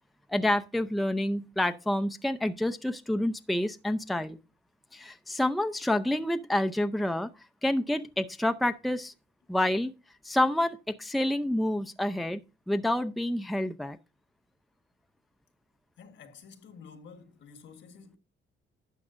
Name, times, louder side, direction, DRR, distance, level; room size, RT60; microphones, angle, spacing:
voice 1, 0.3-4.4 4.9-7.3 7.6-9.1 9.5-9.9 10.2-12.4 12.7-14.0, left 1 dB, ahead, 0.5 m, -28 dB
voice 2, 16.0-18.2, left 5 dB, 70° left, 1.4 m, -50 dB
11.5 x 7.3 x 2.6 m
cardioid pair, 90°, 20 cm